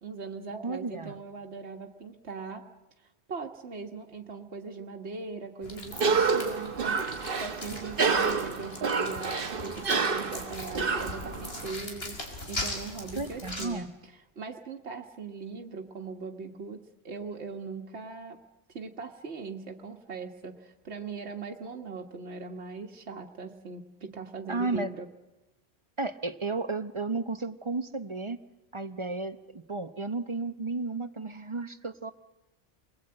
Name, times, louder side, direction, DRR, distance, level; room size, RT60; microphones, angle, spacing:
voice 1, 0.0-2.7 3.0-7.0 7.4-18.4 18.7-25.1, right 4 dB, 85° right, 2 dB, 1.7 m, -40 dB
voice 2, 0.5-1.2 13.2-13.9 24.5-24.9 26.0-28.4 28.7-32.1, right 3 dB, 30° right, 11 dB, 0.9 m, -33 dB
sound 1, 5.6-13.6, left 1 dB, 65° left, 5.1 m, -40 dB
Cough, 5.9-11.7, right 4 dB, 55° right, 1.4 m, -29 dB
29.0 x 21.0 x 8.8 m, 1.1 s
omnidirectional pair, 1.1 m